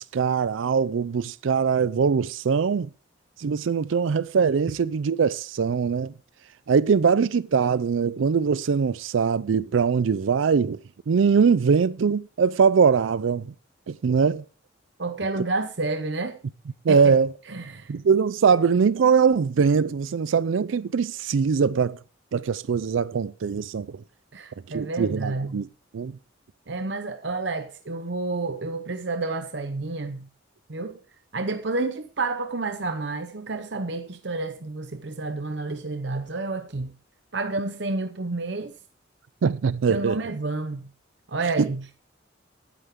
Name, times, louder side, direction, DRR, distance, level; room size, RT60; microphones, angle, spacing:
voice 1, 0.0-2.9 3.4-6.1 6.7-10.8 11.1-13.5 13.9-14.4 16.8-17.3 17.9-22.0 22.3-24.0 24.7-25.7 25.9-26.1 39.4-40.2 41.6-41.7, right 6 dB, 85° right, 0.4 m, -22 dB
voice 2, 15.0-16.4 16.9-17.2 17.5-17.9 24.3-25.6 26.7-30.3 30.7-31.0 31.3-36.9 37.3-38.8 39.9-40.9 41.3-41.9, right 3 dB, 60° right, 0.9 m, -30 dB
11.5 x 10.5 x 3.7 m
head